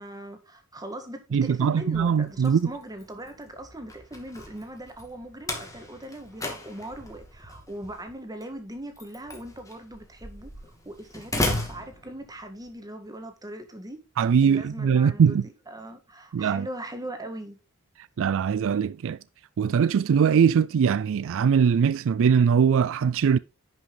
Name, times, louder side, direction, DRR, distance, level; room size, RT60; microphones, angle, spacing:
voice 1, 0.0-10.5 10.8-14.0 14.4-17.6, right 1 dB, 15° right, 1.7 m, -40 dB
voice 2, 1.3-2.7 14.2-15.4 16.3-16.7 18.2-19.2 19.6-23.4, right 7 dB, 60° right, 0.4 m, -21 dB
Slam, 1.8-12.7, left 1 dB, 15° left, 2.2 m, -36 dB
10.5 x 5.9 x 3.9 m
head